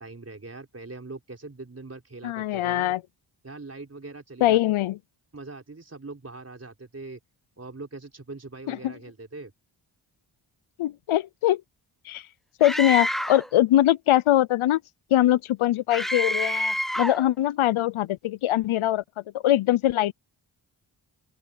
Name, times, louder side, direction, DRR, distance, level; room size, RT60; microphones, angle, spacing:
voice 1, 0.0-2.9 3.4-4.6 5.3-7.2 7.6-9.5, right 3 dB, 30° right, 4.5 m, -41 dB
voice 2, 2.2-3.0 4.4-5.0 8.7-8.9 10.8-11.6 12.1-12.2 12.6-14.8 15.1-19.0 19.4-20.1, left 13 dB, 85° left, 0.6 m, -22 dB
Screaming, 12.6-13.5 15.9-17.3, equal, ahead, 0.4 m, -27 dB
open air
cardioid pair, 70°, 48 cm